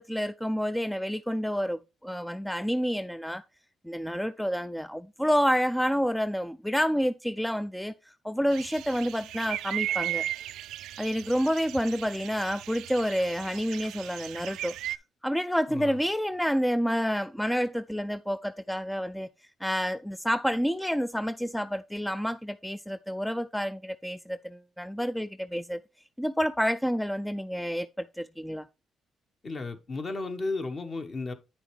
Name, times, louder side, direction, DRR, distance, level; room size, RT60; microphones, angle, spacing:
voice 1, 0.0-3.4 3.8-10.2 11.0-14.7 15.2-19.3 19.6-25.8 26.2-28.7, equal, 5° left, 0.3 m, -29 dB
sound 1, 8.5-15.0, right 12 dB, 85° right, 0.3 m, -36 dB
voice 2, 29.4-31.3, left 3 dB, 40° left, 1.2 m, -34 dB
9.3 x 6.0 x 3.2 m
cardioid pair, 90°, 0 cm